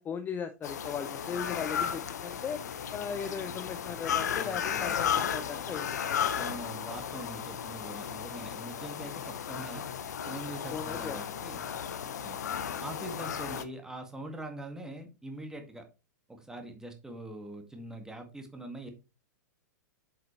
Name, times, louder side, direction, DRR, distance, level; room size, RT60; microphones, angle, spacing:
voice 1, 0.0-2.6 2.9-6.4 10.7-11.8, left 7 dB, 15° left, 10 dB, 0.6 m, -38 dB
sound 1, 0.6-13.6, left 8 dB, 60° left, 0.8 m, -34 dB
voice 2, 4.4-5.1 6.4-9.9 10.3-11.6 12.2-12.4 12.8-15.8 16.3-18.9, right 1 dB, 5° right, 4 dB, 1.9 m, -43 dB
7.9 x 6.9 x 3.1 m, 0.29 s
figure-of-eight pair, 100°, 10 cm